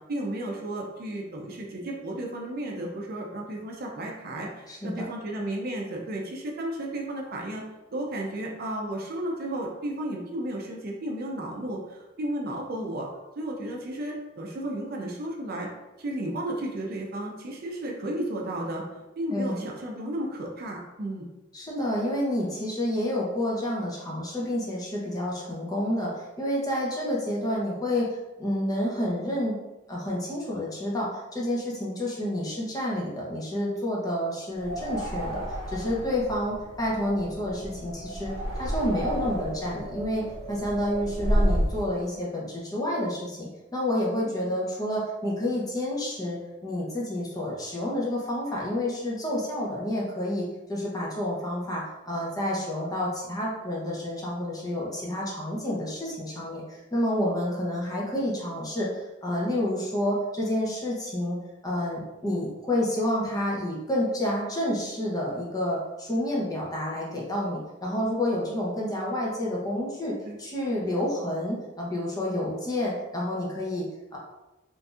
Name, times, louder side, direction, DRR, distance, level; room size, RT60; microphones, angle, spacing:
voice 1, 0.1-7.6 7.9-13.1 13.4-15.7 16.0-18.8 19.2-21.3 44.4-44.5 57.1-57.3 70.2-70.4, right 1 dB, 50° right, 0 dB, 0.5 m, -33 dB
voice 2, 4.7-5.0 19.3-19.6 21.5-28.1 28.4-29.6 29.9-61.4 61.6-74.2, left 1 dB, 20° left, -4 dB, 0.7 m, -29 dB
sound 1, 34.5-41.8, equal, 80° right, 0.8 m, -31 dB
3.9 x 2.6 x 2.4 m, 1.0 s
head